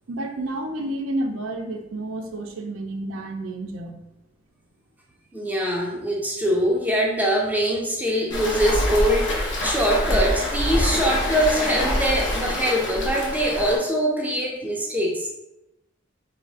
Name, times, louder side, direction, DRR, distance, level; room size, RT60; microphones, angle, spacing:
voice 1, 0.1-4.0, right 1 dB, 85° right, 4 dB, 0.5 m, -30 dB
voice 2, 5.3-15.3, equal, 10° right, -2 dB, 0.5 m, -23 dB
Waves surf, 8.3-13.8, left 1 dB, 60° left, 0.8 m, -25 dB
2.7 x 2.5 x 4.0 m, 0.90 s
head